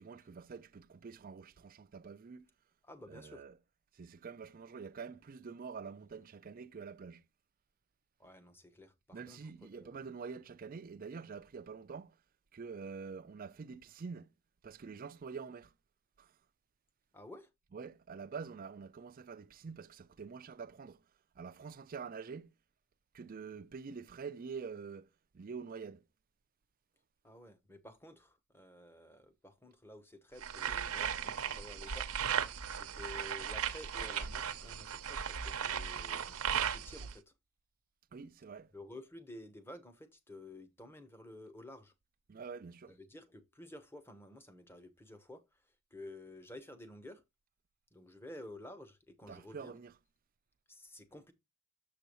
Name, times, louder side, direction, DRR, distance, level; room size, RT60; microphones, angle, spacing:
voice 1, 0.0-2.5 3.1-3.6 3.9-7.2 9.1-12.2 12.5-14.3 14.6-15.7 16.2-16.3 17.7-21.0 21.4-22.5 23.1-26.0 38.1-38.7 42.3-43.0 49.3-49.9, right 5 dB, 40° right, 0.4 m, -46 dB
voice 2, 2.8-3.4 8.2-9.4 9.7-10.0 17.1-17.5 27.2-32.1 32.7-37.3 38.7-41.9 42.9-45.6 45.9-47.2 47.9-49.8 50.7-51.3, left 1 dB, 10° left, 0.8 m, -52 dB
sound 1, 30.4-37.1, right 8 dB, 80° right, 0.7 m, -37 dB
7.0 x 6.7 x 3.0 m
head